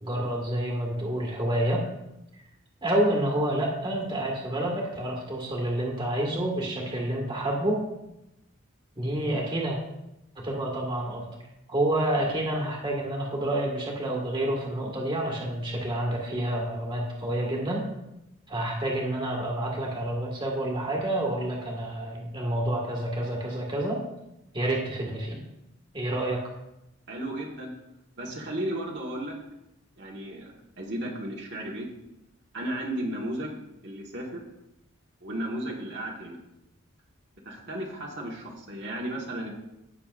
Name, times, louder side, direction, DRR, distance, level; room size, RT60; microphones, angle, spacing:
voice 1, 0.0-1.8 2.8-7.8 9.0-9.8 10.4-11.3 11.7-17.8 18.5-24.0 24.5-25.4 25.9-26.4, right 1 dB, 20° right, -1 dB, 1.8 m, -28 dB
voice 2, 27.1-27.7 28.2-29.4 30.0-31.9 32.5-33.5 33.8-34.4 35.2-36.4 37.4-39.5, right 1 dB, 50° right, -2 dB, 1.5 m, -34 dB
17.5 x 6.8 x 2.5 m, 0.88 s
head